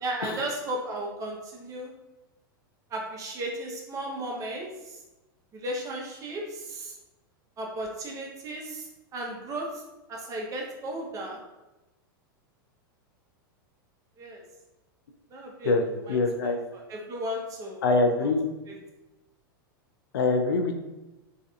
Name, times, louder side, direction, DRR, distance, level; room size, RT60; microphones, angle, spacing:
voice 1, 0.0-1.9 2.9-5.0 5.5-6.9 7.6-9.8 10.1-11.4 14.2-14.4 15.3-15.7 16.1-17.8 18.7-18.8, right 1 dB, 30° right, -1 dB, 0.6 m, -35 dB
voice 2, 16.1-16.6 17.8-18.4 20.1-20.8, left 3 dB, 90° left, 5 dB, 0.4 m, -24 dB
2.5 x 2.4 x 2.2 m, 1.0 s
hypercardioid pair, 120°, 12 cm